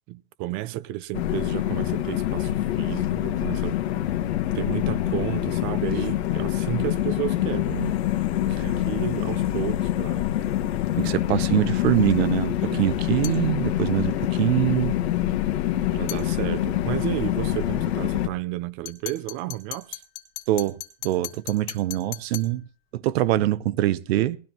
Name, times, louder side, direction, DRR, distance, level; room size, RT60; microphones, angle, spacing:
voice 1, 0.1-4.1 4.5-8.0 8.5-10.3 12.7-12.8 15.9-20.0, right 14 dB, 40° right, 0.5 m, -32 dB
sound 1, 1.1-18.3, left 13 dB, 85° left, 1.4 m, -25 dB
voice 2, 11.0-14.9 20.5-20.8 21.0-22.6 22.9-24.4, right 15 dB, 75° right, 0.8 m, -24 dB
sound 2, 13.2-13.5 16.1-16.3 18.9-22.6, left 16 dB, 60° left, 2.2 m, -38 dB
19.0 x 12.0 x 3.0 m
supercardioid pair, 155°, 32 cm